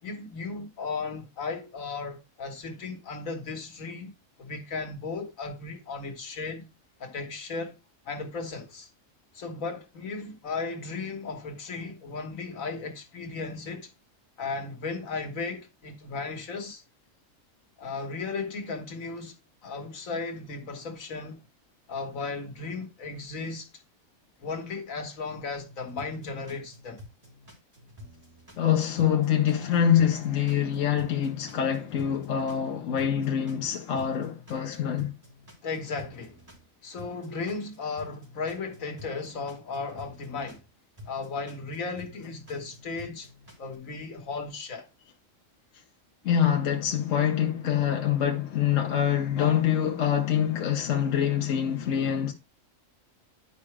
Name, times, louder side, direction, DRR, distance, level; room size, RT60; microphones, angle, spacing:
voice 1, 0.0-4.1 4.4-6.7 7.0-7.8 8.1-8.9 9.3-13.9 14.4-16.8 17.8-19.3 19.6-21.4 21.9-23.7 24.4-27.0 35.6-36.4 36.8-40.6 41.1-43.3 43.6-44.9, left 4 dB, 90° left, 1.8 m, -35 dB
sound 1, 25.9-28.7 29.0-32.7 33.0-36.7 37.0-40.7 41.0-43.7, left 1 dB, 20° right, 3.7 m, -50 dB
voice 2, 28.6-35.1 46.2-52.3, left 9 dB, 75° left, 1.2 m, -25 dB
11.0 x 4.8 x 3.3 m
omnidirectional pair, 1.4 m